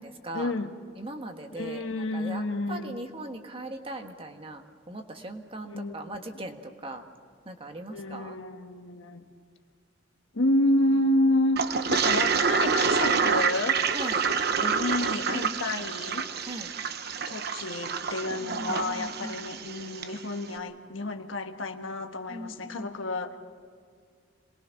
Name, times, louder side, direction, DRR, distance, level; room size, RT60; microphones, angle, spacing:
voice 1, 0.3-0.8 1.5-3.0 5.6-6.4 7.9-9.3 10.3-13.8 14.5-16.2 17.3-23.4, left 1 dB, 85° left, 6 dB, 1.5 m, -29 dB
voice 2, 1.0-1.8 2.1-2.4 2.7-7.0 7.4-8.3 13.2-13.4 13.9-14.2 15.3-15.8 16.4-16.7 18.4-19.4 22.3-22.9, right 1 dB, 30° right, 5 dB, 1.5 m, -39 dB
Toilet flush, 11.6-20.1, right 5 dB, 55° right, 0.9 m, -27 dB
27.0 x 20.5 x 5.9 m, 2.1 s
head